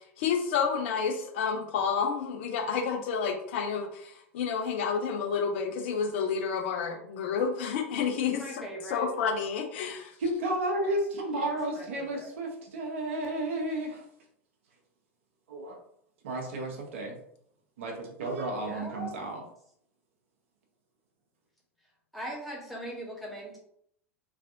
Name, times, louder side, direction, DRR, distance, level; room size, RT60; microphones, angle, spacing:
voice 1, 0.2-8.6 8.9-10.2, left 6 dB, 60° left, 4 dB, 0.6 m, -30 dB
voice 2, 8.2-9.1 11.3-12.3 18.6-19.2 22.1-23.6, equal, ahead, -4 dB, 1.3 m, -40 dB
voice 3, 10.2-14.0 15.5-15.8 16.2-17.2 17.8-19.4, right 1 dB, 65° right, 1 dB, 0.8 m, -32 dB
3.2 x 2.5 x 2.6 m, 0.69 s
figure-of-eight pair, 85°, 7 cm